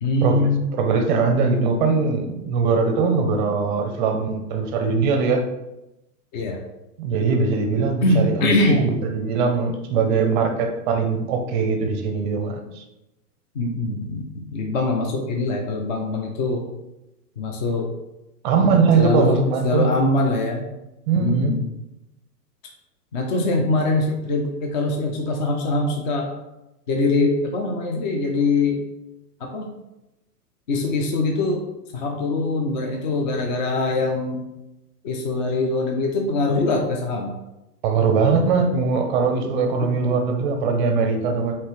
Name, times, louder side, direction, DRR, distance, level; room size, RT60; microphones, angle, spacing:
voice 1, 0.0-0.7 6.3-6.6 8.0-8.9 13.5-16.6 17.4-17.9 19.0-19.4 19.6-20.7 21.2-21.6 23.1-26.3 26.9-28.8 29.4-29.7 30.7-31.6 31.9-34.4 35.0-37.3 38.0-38.2 39.8-39.9, left 2 dB, 30° left, 1 dB, 0.4 m, -23 dB
voice 2, 0.7-5.4 7.0-12.8 18.4-19.9 21.1-21.6 23.6-23.7 37.8-41.5, right 4 dB, 30° right, 4 dB, 0.5 m, -21 dB
5.3 x 2.8 x 3.0 m, 0.94 s
hypercardioid pair, 120°, 49 cm